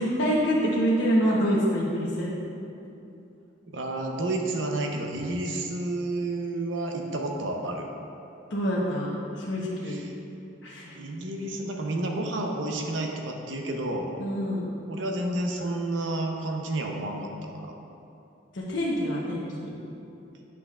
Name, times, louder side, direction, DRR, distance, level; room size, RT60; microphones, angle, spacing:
voice 1, 0.0-2.3 8.5-10.0 10.6-11.0 14.2-14.7 18.5-19.5, equal, 70° left, -5 dB, 0.9 m, -26 dB
voice 2, 3.7-7.9 9.8-10.0 10.9-14.1 14.9-17.3, right 2 dB, 80° right, 2 dB, 0.8 m, -30 dB
10.0 x 6.0 x 2.4 m, 2.8 s
head